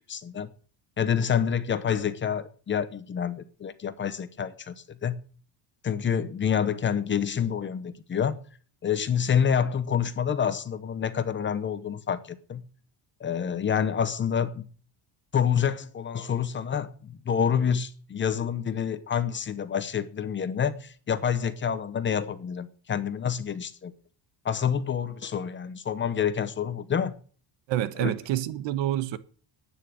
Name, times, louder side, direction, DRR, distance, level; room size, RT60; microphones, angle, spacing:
voice 1, 0.1-0.5 1.0-5.1 5.8-8.4 8.8-12.6 13.2-14.6 15.3-23.9 24.4-27.1 28.0-28.1, left 8 dB, 25° left, 0.8 m, -27 dB
voice 2, 27.7-29.2, right 12 dB, 75° right, 1.3 m, -27 dB
10.5 x 9.2 x 9.1 m
cardioid pair, 175°, 45 cm